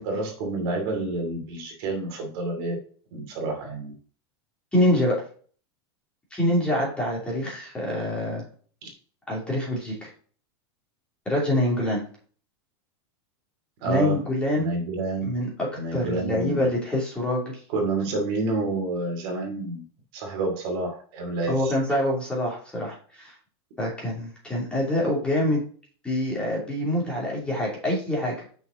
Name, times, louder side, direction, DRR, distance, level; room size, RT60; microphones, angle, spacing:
voice 1, 0.0-2.8 3.1-3.9 8.8-8.9 13.8-14.2 14.5-15.3 15.8-16.7 17.7-19.8 20.1-22.0, right 2 dB, 55° right, 1 dB, 2.5 m, -29 dB
voice 2, 4.7-5.2 6.3-8.4 9.3-10.1 11.3-12.0 13.8-14.7 15.2-17.6 21.5-23.4 23.8-25.6 26.0-28.4, left 1 dB, 5° left, -4 dB, 2.7 m, -25 dB
6.1 x 5.5 x 3.8 m, 0.44 s
supercardioid pair, 155°, 15 cm